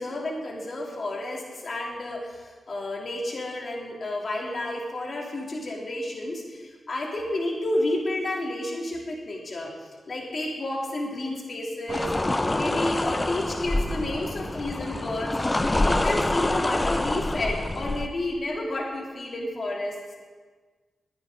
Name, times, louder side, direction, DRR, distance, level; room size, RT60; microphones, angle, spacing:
voice 1, 0.0-12.1 12.5-15.4 15.7-20.2, left 1 dB, 50° left, -1 dB, 3.2 m, -31 dB
sound 1, 11.9-18.1, left 2 dB, 20° left, 0.6 m, -26 dB
22.0 x 9.4 x 3.9 m, 1.4 s
cardioid pair, 90°, 0 cm